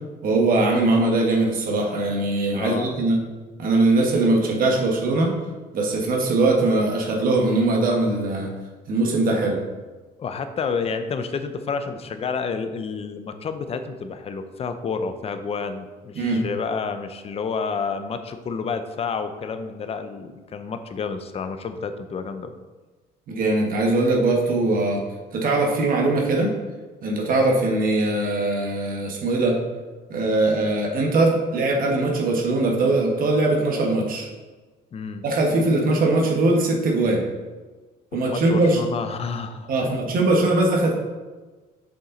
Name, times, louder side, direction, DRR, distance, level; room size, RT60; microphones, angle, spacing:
voice 1, 0.2-3.2 3.6-5.3 5.7-8.5 8.9-9.6 16.1-16.4 23.3-25.0 25.3-26.5 27.0-29.5 30.1-34.3 35.2-37.2 38.1-38.8 39.7-40.9, right 2 dB, 55° right, 0 dB, 1.5 m, -21 dB
voice 2, 2.5-2.9 10.2-22.5 34.9-35.2 38.1-40.0, left 5 dB, 35° left, 9 dB, 0.6 m, -30 dB
7.2 x 5.4 x 4.0 m, 1.3 s
cardioid pair, 110°, 17 cm